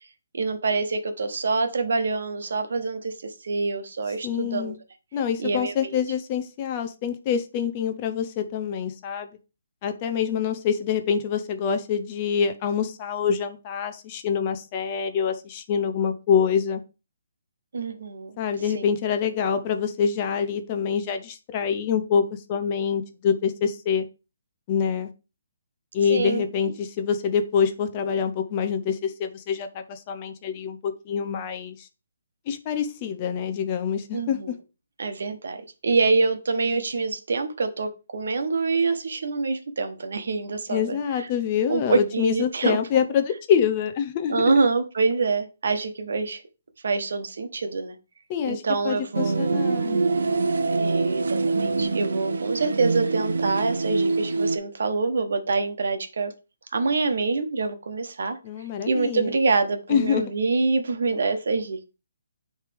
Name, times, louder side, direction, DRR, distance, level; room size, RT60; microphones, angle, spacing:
voice 1, 0.3-4.8 5.4-6.0 17.7-18.4 18.7-18.9 26.1-26.4 34.1-34.5 35.0-41.3 41.7-42.8 44.3-46.4 46.8-48.0 48.5-49.4 50.7-56.3 56.7-58.4 58.9-61.8, right 4 dB, 70° right, 7 dB, 1.0 m, -26 dB
voice 2, 4.2-4.8 5.1-9.3 9.8-16.8 18.4-24.1 24.7-25.1 25.9-31.9 32.5-34.5 40.7-44.4 48.3-50.0 58.4-59.3 59.9-60.2, left 7 dB, 25° left, 7 dB, 0.5 m, -26 dB
sound 1, 49.1-54.6, right 3 dB, 85° right, 0.7 m, -25 dB
9.7 x 3.2 x 3.5 m, 0.30 s
hypercardioid pair, 170°, 0 cm